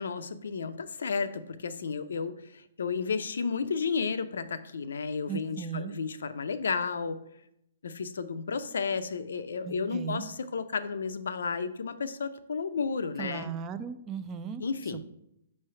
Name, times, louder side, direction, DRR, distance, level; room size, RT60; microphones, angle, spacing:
voice 1, 0.0-7.2 7.8-13.5 14.6-15.0, left 5 dB, 75° left, 12 dB, 0.5 m, -32 dB
voice 2, 5.3-5.9 9.6-10.3 13.2-14.6, right 7 dB, 25° right, 11 dB, 0.5 m, -36 dB
5.3 x 3.3 x 5.6 m, 0.79 s
hypercardioid pair, 135°, 0 cm